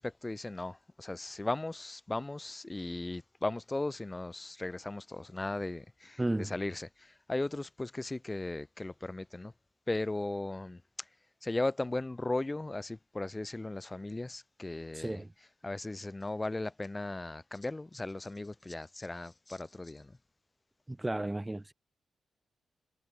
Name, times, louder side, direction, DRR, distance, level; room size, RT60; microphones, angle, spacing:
voice 1, 0.0-9.5 9.9-10.8 11.4-15.2 15.6-20.1, left 2 dB, 15° left, 1.6 m, -37 dB
voice 2, 6.2-6.6 14.9-15.3 20.9-21.7, right 1 dB, 10° right, 0.8 m, -33 dB
cardioid pair, 115°, 0 cm